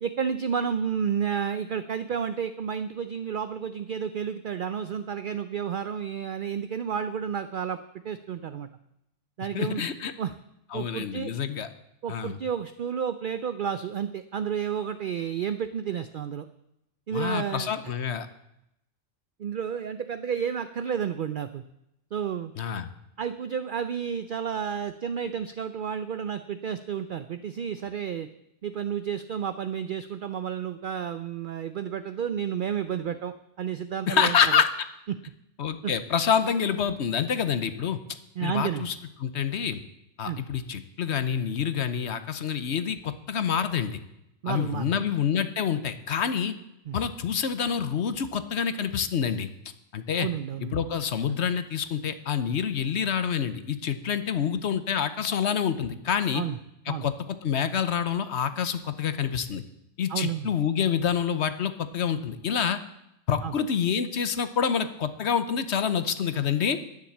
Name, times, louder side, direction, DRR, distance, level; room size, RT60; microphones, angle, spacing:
voice 1, 0.0-7.8 8.0-8.7 9.4-9.8 10.2-10.3 10.7-11.3 12.0-16.5 17.1-17.7 19.4-21.6 22.1-22.5 23.2-28.3 28.6-34.4 35.1-35.2 35.8-35.9 38.4-38.9 40.3-40.4 44.4-44.9 46.9-47.0 50.2-50.8 56.3-56.6 56.9-57.1 60.1-60.5 63.4-63.5, right 8 dB, 55° right, 11 dB, 0.6 m, -31 dB
voice 2, 9.5-10.1 10.7-11.7 12.1-12.4 17.1-18.3 22.6-22.9 34.1-34.7 35.6-38.0 38.4-38.9 39.2-39.8 40.2-44.0 44.5-46.6 46.9-49.5 49.9-50.3 50.7-56.4 56.9-59.6 60.0-62.8 63.3-66.8, left 7 dB, 60° left, 11 dB, 1.0 m, -27 dB
10.5 x 10.0 x 7.3 m, 0.83 s
omnidirectional pair, 1.3 m